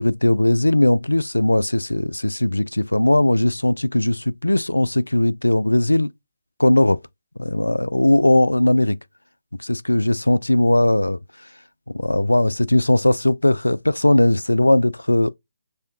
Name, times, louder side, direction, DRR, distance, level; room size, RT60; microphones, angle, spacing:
voice 1, 0.0-6.1 6.6-7.0 7.4-9.0 9.6-11.5 11.9-15.3, left 1 dB, 85° left, 0.3 m, -18 dB
6.5 x 2.7 x 2.3 m
figure-of-eight pair, 140°, 0 cm